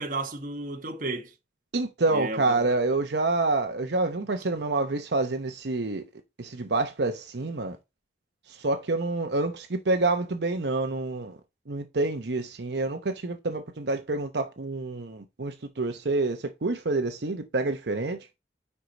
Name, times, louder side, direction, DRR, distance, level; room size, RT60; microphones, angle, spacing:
voice 1, 0.0-1.3 2.1-2.8, right 2 dB, 50° right, 1.4 m, -33 dB
voice 2, 1.7-6.0 6.4-7.8 8.5-11.4 11.7-18.3, right 2 dB, 75° right, 0.8 m, -27 dB
10.0 x 4.6 x 4.0 m
head